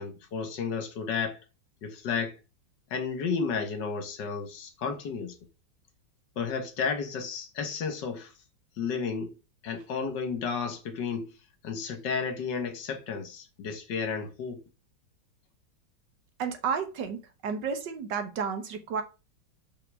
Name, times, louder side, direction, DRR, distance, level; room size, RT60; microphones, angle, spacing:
voice 1, 0.0-1.4 1.8-2.3 2.9-5.3 6.4-8.3 8.8-9.3 9.6-11.3 11.6-14.6, left 5 dB, 60° left, 1.8 m, -32 dB
voice 2, 16.4-19.0, right 6 dB, 60° right, 1.7 m, -32 dB
5.7 x 5.0 x 4.8 m
omnidirectional pair, 2.3 m